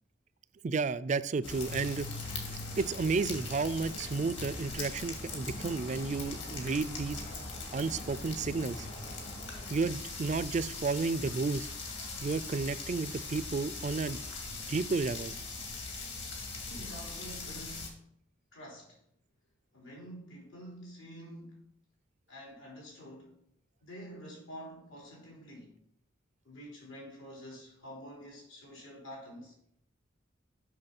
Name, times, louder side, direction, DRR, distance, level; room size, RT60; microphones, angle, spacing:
voice 1, 0.6-2.1 2.8-7.2 7.7-8.9 9.7-11.7 12.2-14.2 14.7-15.3, right 4 dB, 40° right, 0.4 m, -32 dB
sound 1, 1.4-17.9, left 3 dB, 65° left, 2.3 m, -40 dB
voice 2, 16.7-18.0 18.5-19.0 19.7-21.7 22.3-23.4 23.8-25.8 26.4-29.6, equal, 85° left, 4.0 m, -48 dB
7.8 x 6.1 x 5.9 m
head